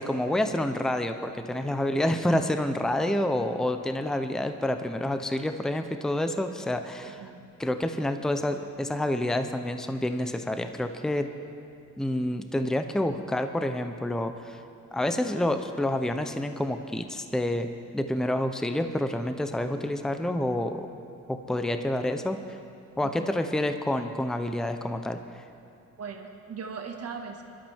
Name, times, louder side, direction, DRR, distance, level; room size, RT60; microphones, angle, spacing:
voice 1, 0.0-7.2 7.6-11.3 12.0-14.6 14.9-17.7 17.9-20.9 21.3-22.6 23.0-25.4, left 1 dB, ahead, 7 dB, 0.6 m, -28 dB
voice 2, 7.1-7.5 23.0-23.4 26.0-27.4, right 5 dB, 55° right, 3 dB, 1.7 m, -39 dB
23.0 x 12.0 x 3.5 m, 2.7 s
cardioid pair, 90°, 30 cm